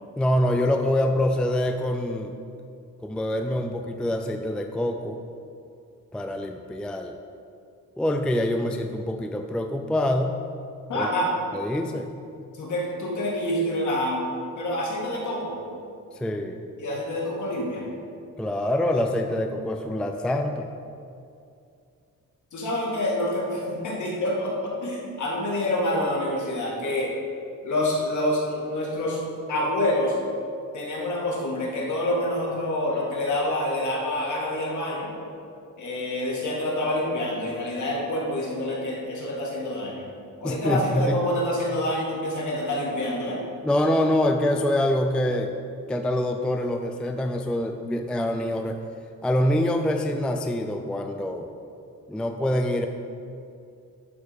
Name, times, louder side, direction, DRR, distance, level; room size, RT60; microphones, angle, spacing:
voice 1, 0.2-2.3 3.0-5.2 6.1-7.2 8.0-10.4 10.9-11.1 11.5-12.1 16.1-16.6 18.4-20.7 40.4-41.2 43.6-45.5 45.9-48.8 49.2-51.5 52.1-52.9, left 1 dB, 5° left, 5 dB, 0.3 m, -25 dB
voice 2, 10.9-11.3 12.5-14.2 14.6-15.6 16.8-17.9 22.5-27.1 27.6-29.2 29.5-30.2 30.7-35.1 35.8-40.0 40.4-43.4, left 1 dB, 60° left, -4 dB, 2.3 m, -27 dB
12.0 x 4.8 x 5.2 m, 2.5 s
cardioid pair, 135°, 33 cm